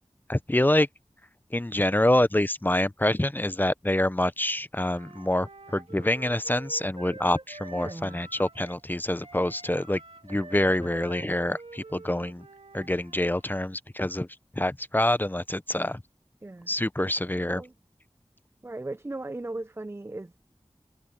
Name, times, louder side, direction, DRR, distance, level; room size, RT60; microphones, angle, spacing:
voice 1, 0.3-0.9 1.5-12.5 12.7-14.3 14.6-16.0 16.7-17.6, left 1 dB, 20° left, 0.7 m, -26 dB
Wind instrument woodwind instrument, 4.8-8.8 9.2-13.4, right 2 dB, 70° right, 2.2 m, -46 dB
voice 2, 7.7-8.2 12.7-12.9 16.4-16.7 17.5-17.7 18.6-20.4, right 2 dB, 25° right, 0.5 m, -37 dB
wide cardioid pair, 40°, 11 cm